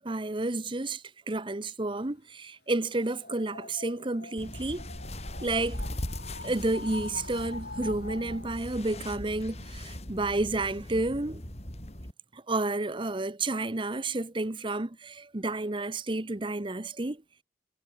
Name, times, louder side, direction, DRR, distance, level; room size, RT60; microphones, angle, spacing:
voice 1, 0.0-4.9 5.4-5.8 6.4-11.4 12.3-17.2, right 2 dB, 30° right, 0.9 m, -31 dB
sound 1, 2.8-8.6, left 3 dB, 65° left, 4.4 m, -44 dB
sound 2, 4.4-12.1, left 1 dB, 40° left, 4.4 m, -40 dB
head